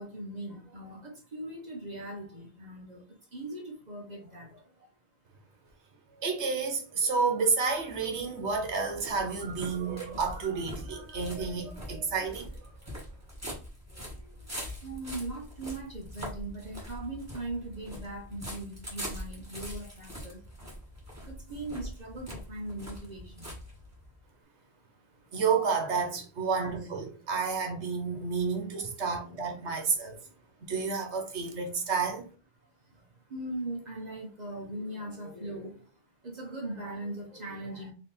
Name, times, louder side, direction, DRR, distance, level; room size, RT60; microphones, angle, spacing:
voice 1, 0.0-4.9 13.9-14.5 14.8-20.4 21.2-23.6 30.1-30.5 32.8-33.0 33.3-35.9 36.2-37.9, right 1 dB, 45° right, 0.9 m, -40 dB
voice 2, 6.2-12.7 25.3-30.2 30.7-32.2, right 5 dB, 85° right, 1.3 m, -30 dB
sound 1, 7.7-24.2, equal, 15° right, 1.5 m, -43 dB
3.5 x 3.0 x 4.3 m
omnidirectional pair, 1.1 m